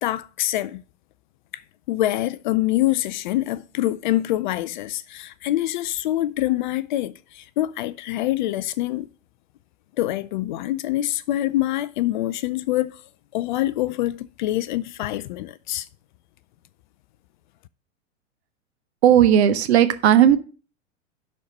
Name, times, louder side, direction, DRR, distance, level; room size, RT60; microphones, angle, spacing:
voice 1, 0.0-0.8 1.5-1.6 1.9-9.1 10.0-13.0 13.3-15.9, left 15 dB, 40° left, 0.4 m, -25 dB
voice 2, 19.0-20.4, right 10 dB, 55° right, 1.3 m, -15 dB
11.0 x 4.3 x 6.4 m
figure-of-eight pair, 100°, 39 cm